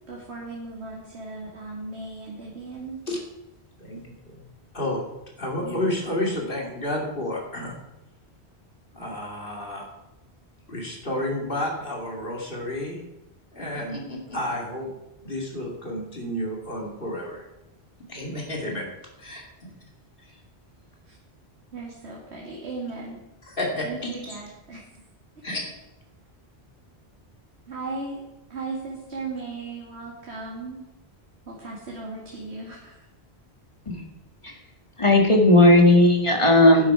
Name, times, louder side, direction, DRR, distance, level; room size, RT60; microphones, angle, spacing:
voice 1, 0.1-3.0 21.1-21.2 21.7-23.2 23.8-24.8 27.7-28.2 28.5-30.8 31.5-33.0, right 3 dB, 85° right, -3 dB, 2.3 m, -36 dB
voice 2, 3.8-4.4 4.7-5.1 5.4-7.8 8.9-9.9 10.7-13.0 13.5-14.9 15.2-17.4 18.1-18.9 19.2-19.4 23.4-24.4 25.4-25.6, left 1 dB, 55° left, -1 dB, 2.7 m, -30 dB
voice 3, 35.0-36.9, left 1 dB, 30° left, 2 dB, 1.8 m, -16 dB
11.0 x 10.5 x 4.8 m, 0.93 s
omnidirectional pair, 1.1 m